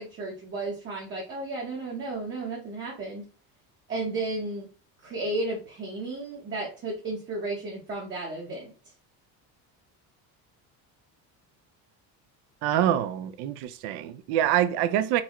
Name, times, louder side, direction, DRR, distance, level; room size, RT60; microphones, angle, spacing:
voice 1, 0.0-3.2 3.9-4.7 5.0-8.7, right 2 dB, 30° right, 0.8 m, -33 dB
voice 2, 12.6-15.2, right 11 dB, 75° right, 0.5 m, -25 dB
4.0 x 2.2 x 2.9 m
cardioid pair, 155°, 39 cm